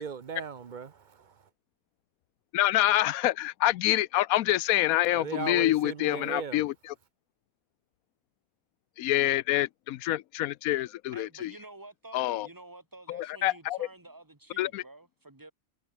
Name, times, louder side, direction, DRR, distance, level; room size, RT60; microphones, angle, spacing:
voice 1, 0.0-1.5 5.1-6.6, right 6 dB, 40° right, 0.8 m, -37 dB
voice 2, 2.5-6.7 9.0-11.5 12.1-12.5 13.1-13.9 14.6-14.8, left 15 dB, 80° left, 1.0 m, -26 dB
voice 3, 11.1-15.5, right 2 dB, 15° right, 1.7 m, -49 dB
omnidirectional pair, 1.5 m